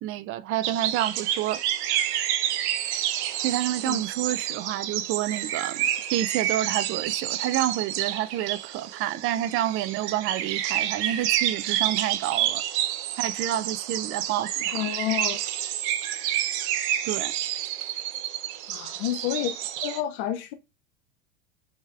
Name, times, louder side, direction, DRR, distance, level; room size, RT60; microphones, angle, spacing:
voice 1, 0.0-1.6 3.4-5.8 6.1-12.6 13.2-14.8 17.0-17.3, right 13 dB, 35° right, 0.4 m, -28 dB
sound 1, 0.6-20.0, right 11 dB, 65° right, 0.8 m, -29 dB
voice 2, 14.7-15.4 18.7-19.5 19.8-20.5, left 11 dB, 55° left, 0.6 m, -29 dB
6.3 x 3.2 x 2.4 m
hypercardioid pair, 95°, 36 cm